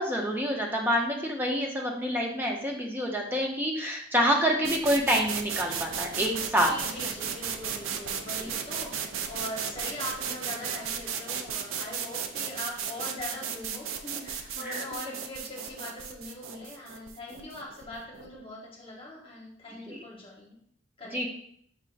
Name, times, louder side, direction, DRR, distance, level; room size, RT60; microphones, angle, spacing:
voice 1, 0.0-6.7 14.6-14.8 19.9-20.0 21.1-21.3, equal, 10° right, 0 dB, 0.6 m, -27 dB
sound 1, 4.6-18.4, right 7 dB, 75° right, 0.4 m, -35 dB
voice 2, 6.6-8.9 9.3-20.6 21.0-21.3, left 1 dB, 25° left, -4 dB, 1.2 m, -41 dB
5.7 x 3.5 x 2.5 m, 0.65 s
head